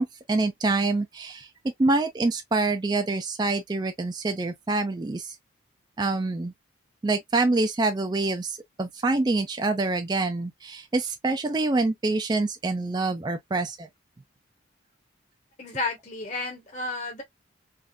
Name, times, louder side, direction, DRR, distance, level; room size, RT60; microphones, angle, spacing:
voice 1, 0.0-1.5 1.8-5.4 6.0-6.5 7.0-13.9, right 3 dB, 20° right, 0.3 m, -26 dB
voice 2, 15.6-17.2, left 2 dB, 35° left, 1.0 m, -32 dB
3.4 x 2.5 x 2.2 m
head